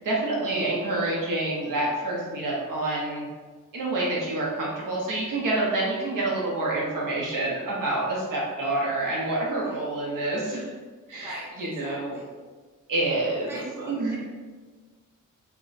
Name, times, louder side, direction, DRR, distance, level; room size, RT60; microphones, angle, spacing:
voice 1, 0.0-3.3 3.7-10.7 11.1-12.2 12.9-14.2, right 2 dB, 75° right, -4 dB, 0.8 m, -27 dB
voice 2, 11.2-12.2 13.5-14.2, equal, 5° right, -7 dB, 0.7 m, -42 dB
2.2 x 2.2 x 3.8 m, 1.4 s
wide cardioid pair, 135°, 33 cm